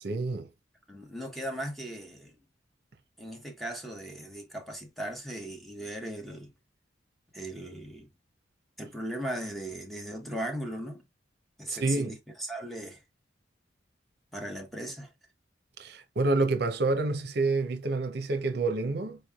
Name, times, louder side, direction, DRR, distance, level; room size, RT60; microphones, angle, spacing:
voice 1, 0.0-0.5 11.7-12.1 15.8-19.2, right 3 dB, 55° right, 0.7 m, -28 dB
voice 2, 0.9-2.4 3.2-6.5 7.3-8.1 8.8-11.0 11.6-13.0 14.3-15.1, right 1 dB, ahead, 0.9 m, -38 dB
4.5 x 3.2 x 2.3 m
head